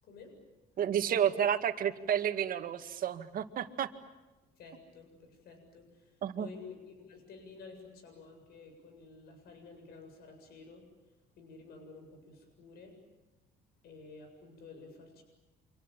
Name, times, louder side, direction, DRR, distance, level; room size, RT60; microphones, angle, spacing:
voice 1, 0.0-0.4 4.6-13.0 13.8-15.2, left 4 dB, 70° left, 5 dB, 7.5 m, -52 dB
voice 2, 0.8-3.9 6.2-6.5, right 9 dB, 55° right, 8 dB, 2.0 m, -31 dB
29.5 x 26.0 x 7.5 m, 1.1 s
cardioid pair, 110°, 17 cm